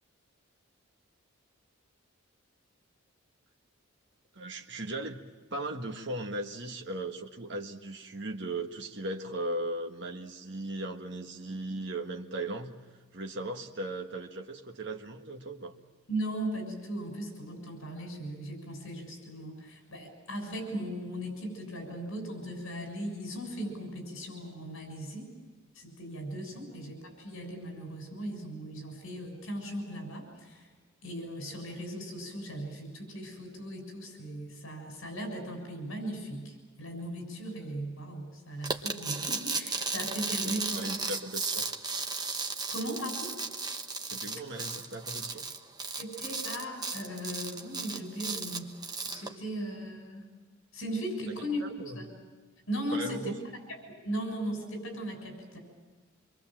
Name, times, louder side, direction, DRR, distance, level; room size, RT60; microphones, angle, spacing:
voice 1, 4.3-5.2 5.5-12.8 13.1-15.7 40.4-41.7 44.0-45.4 51.6-52.0 52.9-53.3, right 1 dB, 50° right, 2 dB, 1.6 m, -37 dB
voice 2, 16.1-25.3 25.7-30.7 31.0-40.9 42.7-43.3 46.0-48.8 49.0-50.3 50.7-51.7 52.0-52.1 52.7-53.4 53.7-55.6, equal, 65° left, 3 dB, 7.0 m, -38 dB
sound 1, 38.6-49.3, right 4 dB, 20° right, 1.1 m, -35 dB
26.5 x 23.0 x 7.6 m, 1.4 s
head